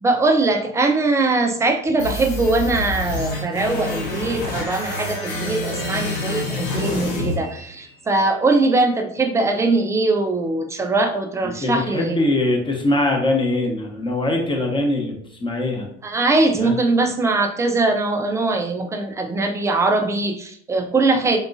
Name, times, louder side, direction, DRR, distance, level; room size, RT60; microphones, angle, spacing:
voice 1, 0.0-12.2 16.0-21.4, right 3 dB, 10° right, 5 dB, 0.4 m, -21 dB
sound 1, 2.0-8.0, left 2 dB, 75° left, 1.3 m, -27 dB
voice 2, 11.4-15.9 16.6-16.8, left 2 dB, 10° left, 1 dB, 0.9 m, -22 dB
3.7 x 3.5 x 2.6 m, 0.64 s
hypercardioid pair, 75°, 40 cm